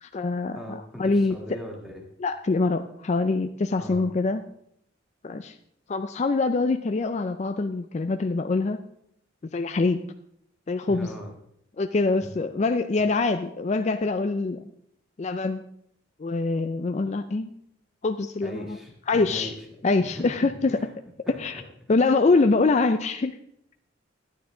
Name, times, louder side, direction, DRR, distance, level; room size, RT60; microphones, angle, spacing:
voice 1, 0.0-1.3 2.2-4.4 5.2-5.5 5.9-8.8 9.5-10.0 10.7-11.1 11.8-14.7 15.2-15.6 16.2-17.5 18.0-18.8 19.1-19.5 19.8-20.9 21.3-21.6 21.9-23.4, left 3 dB, 35° left, 8 dB, 0.4 m, -24 dB
voice 2, 0.5-2.0 3.8-4.1 10.9-11.3 18.4-19.6 20.0-20.9 21.3-21.4, equal, ahead, 0 dB, 1.9 m, -40 dB
12.0 x 9.4 x 3.8 m, 0.71 s
head